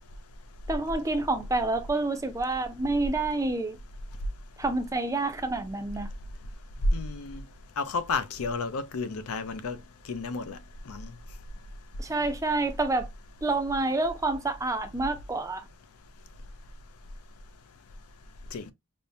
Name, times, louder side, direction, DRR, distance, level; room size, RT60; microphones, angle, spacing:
voice 1, 0.7-3.8 4.6-6.1 12.0-13.1 13.4-15.7, right 2 dB, 15° right, 0.5 m, -28 dB
voice 2, 6.9-7.4 7.8-9.8 10.1-10.6 10.9-11.1 18.5-18.6, left 4 dB, 75° left, 0.5 m, -32 dB
5.3 x 2.1 x 2.6 m
head